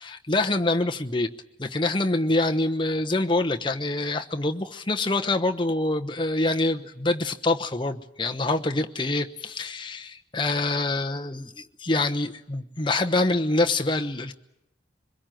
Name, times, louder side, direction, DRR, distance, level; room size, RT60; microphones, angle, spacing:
voice 1, 0.0-1.3 1.6-14.3, left 2 dB, 25° left, 5 dB, 1.0 m, -25 dB
24.0 x 22.0 x 9.2 m, 0.86 s
head